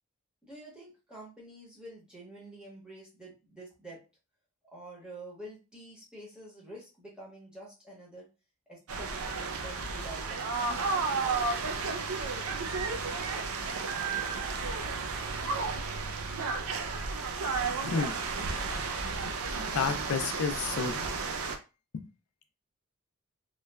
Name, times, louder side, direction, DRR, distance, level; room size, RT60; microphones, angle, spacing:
voice 1, 0.4-4.0 4.7-8.3 8.7-9.2 9.5-11.3, right 1 dB, 5° right, -5 dB, 0.9 m, -48 dB
sound 1, 8.9-21.6, right 4 dB, 85° right, 0.4 m, -33 dB
voice 2, 17.8-18.1 19.2-19.3 19.6-21.2, left 5 dB, 85° left, 8 dB, 0.4 m, -31 dB
3.0 x 2.2 x 2.2 m, 0.30 s
head